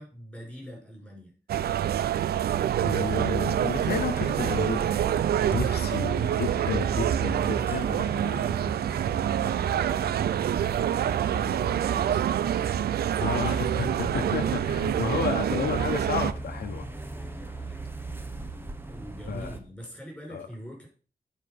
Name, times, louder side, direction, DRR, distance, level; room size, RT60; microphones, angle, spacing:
voice 1, 0.0-1.3 13.8-14.0 14.4-14.7 17.1-17.9 18.9-20.9, equal, 5° left, -2 dB, 5.6 m, -44 dB
sound 1, 1.5-16.3, right 10 dB, 90° right, 0.4 m, -26 dB
voice 2, 2.8-5.2 5.5-8.7 11.2-11.6 13.2-16.9 17.5-17.7 19.3-19.5 20.3-20.5, left 6 dB, 85° left, 5 dB, 1.1 m, -32 dB
sound 2, 3.6-19.6, right 3 dB, 15° right, 1.1 m, -37 dB
9.5 x 5.0 x 5.2 m, 0.39 s
cardioid pair, 90°, 16 cm